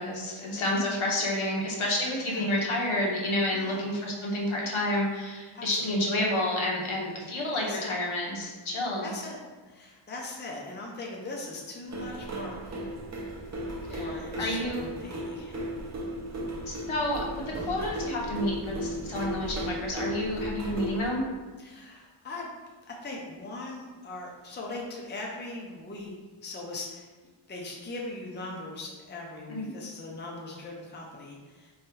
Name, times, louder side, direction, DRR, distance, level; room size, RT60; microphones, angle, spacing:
voice 1, 0.0-9.1 13.9-14.8 16.7-21.2 29.5-29.7, left 1 dB, 70° left, -2 dB, 1.1 m, -30 dB
voice 2, 3.5-3.8 5.5-6.0 7.5-7.9 9.0-9.4 9.7-12.6 13.9-15.6 17.5-17.8 21.6-22.5 23.0-26.1 26.4-27.1 27.5-31.7, left 2 dB, 20° left, -2 dB, 0.6 m, -40 dB
sound 1, 11.9-21.1, right 1 dB, 35° right, 0.6 m, -36 dB
3.5 x 3.2 x 4.6 m, 1.3 s
wide cardioid pair, 170°, 50 cm